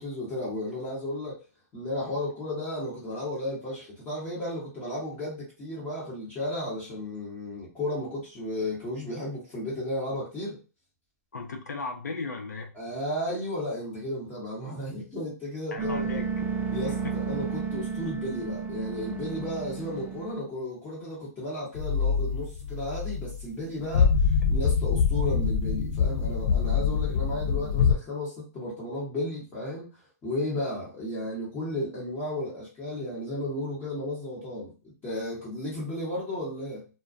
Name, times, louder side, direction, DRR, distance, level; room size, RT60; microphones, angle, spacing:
voice 1, 0.0-1.4 1.7-10.6 12.7-16.2 16.7-29.9 30.2-36.9, left 1 dB, 20° left, -6 dB, 1.0 m, -34 dB
voice 2, 11.3-12.7 15.7-16.3 16.8-17.1, left 3 dB, 85° left, 4 dB, 0.7 m, -36 dB
sound 1, 15.8-20.4, right 6 dB, 15° right, 0.3 m, -32 dB
sound 2, 21.8-23.4 23.9-28.0, left 6 dB, 55° left, 0.4 m, -25 dB
2.2 x 2.1 x 2.5 m, 0.33 s
hypercardioid pair, 135°, 9 cm